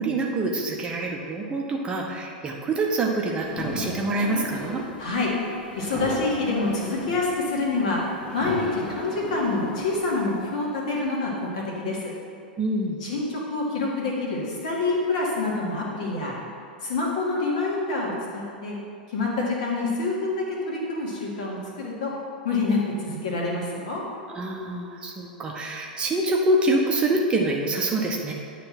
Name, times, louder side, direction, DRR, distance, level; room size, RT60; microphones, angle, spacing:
voice 1, 0.0-4.8 12.6-13.0 24.3-28.3, right 2 dB, 20° right, 0 dB, 0.8 m, -26 dB
sound 1, 3.4-10.4, left 2 dB, 30° left, 1.6 m, -35 dB
voice 2, 5.0-5.3 5.8-8.0 8.3-12.1 13.0-16.4 16.8-18.8 19.1-22.1 22.4-24.0, left 3 dB, 55° left, -3 dB, 1.8 m, -27 dB
9.6 x 3.3 x 6.0 m, 2.3 s
figure-of-eight pair, 95°, 5 cm